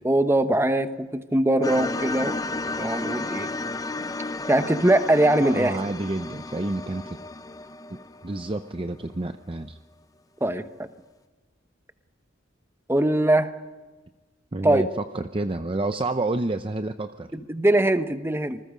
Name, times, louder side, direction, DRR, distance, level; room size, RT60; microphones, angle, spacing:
voice 1, 0.0-2.3 2.8-3.5 4.5-5.7 10.4-10.9 12.9-13.5 14.6-14.8 17.3-18.6, right 1 dB, 15° right, 9 dB, 1.0 m, -21 dB
sound 1, 1.6-8.8, left 2 dB, 20° left, 0.6 m, -33 dB
voice 2, 5.5-7.2 7.9-9.8 14.5-17.3, right 2 dB, 30° right, 8 dB, 0.6 m, -29 dB
26.5 x 20.0 x 5.1 m, 1.3 s
head